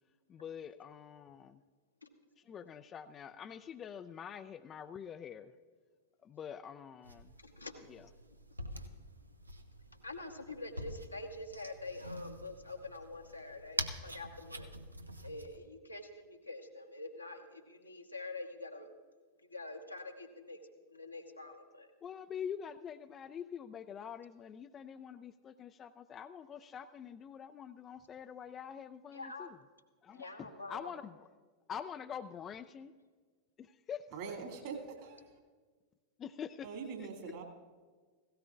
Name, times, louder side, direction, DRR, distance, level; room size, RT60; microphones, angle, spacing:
voice 1, 0.3-1.6 2.4-5.5 6.2-7.3 7.9-8.1 22.0-29.6 30.0-31.3 31.7-32.9 33.6-34.1 36.2-36.7 37.0-37.3, left 8 dB, 25° left, 10 dB, 0.4 m, -45 dB
sound 1, 7.0-15.6, right 1 dB, 85° right, 0.7 m, -45 dB
voice 2, 7.4-7.7 10.0-14.7 15.2-18.9 19.5-20.6 20.9-21.9 29.1-29.5 30.1-30.9, left 2 dB, 85° left, 2 dB, 1.2 m, -46 dB
voice 3, 34.1-35.2 36.6-37.4, right 5 dB, 50° right, 2 dB, 2.4 m, -43 dB
17.0 x 16.5 x 2.5 m, 1.5 s
figure-of-eight pair, 90°, 0 cm